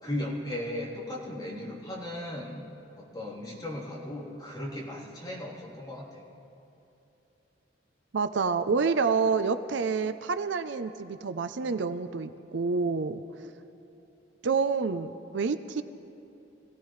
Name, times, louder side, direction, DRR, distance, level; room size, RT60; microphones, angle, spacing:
voice 1, 0.0-2.7 3.0-6.2, left 1 dB, 20° left, -6 dB, 3.3 m, -36 dB
voice 2, 8.1-13.2 14.4-15.8, right 5 dB, 70° right, 11 dB, 0.5 m, -28 dB
25.5 x 16.5 x 3.2 m, 2.9 s
head